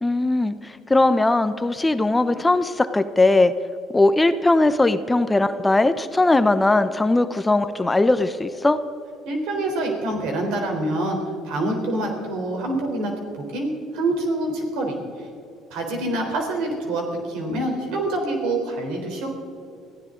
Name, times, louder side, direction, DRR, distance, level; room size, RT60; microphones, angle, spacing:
voice 1, 0.0-3.5 3.9-8.8, left 2 dB, 15° left, 11 dB, 0.8 m, -19 dB
voice 2, 9.3-11.2 11.4-13.1 13.4-15.0 15.7-19.3, right 2 dB, 85° right, 2 dB, 3.8 m, -26 dB
24.0 x 15.0 x 3.9 m, 2.5 s
cardioid pair, 100°, 0 cm